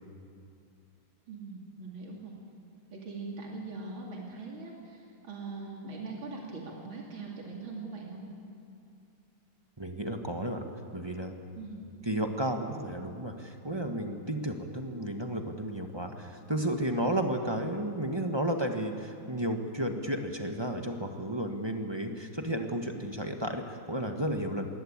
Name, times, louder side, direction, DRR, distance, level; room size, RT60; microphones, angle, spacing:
voice 1, 1.3-2.3 2.9-8.3 11.5-11.8, right 3 dB, 80° right, -1 dB, 3.3 m, -41 dB
voice 2, 9.8-10.6 10.9-11.3 12.1-24.7, right 1 dB, 15° right, 4 dB, 1.1 m, -33 dB
21.5 x 18.0 x 8.8 m, 2.4 s
omnidirectional pair, 2.2 m